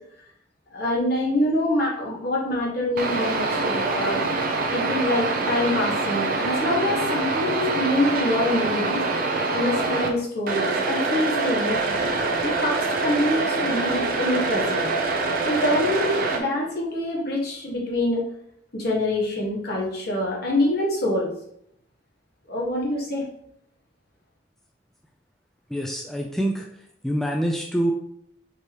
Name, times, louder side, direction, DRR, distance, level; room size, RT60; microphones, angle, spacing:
voice 1, 0.7-4.2 4.7-9.0 9.5-12.1 12.4-14.9 15.4-18.2 18.7-21.3 22.5-23.2, left 1 dB, 55° left, -3 dB, 1.4 m, -25 dB
sound 1, 3.0-10.1 10.5-16.4, right 3 dB, 50° right, 0.6 m, -25 dB
voice 2, 25.7-26.7 27.0-27.9, equal, ahead, 0 dB, 0.3 m, -25 dB
4.5 x 2.9 x 3.3 m, 0.71 s
head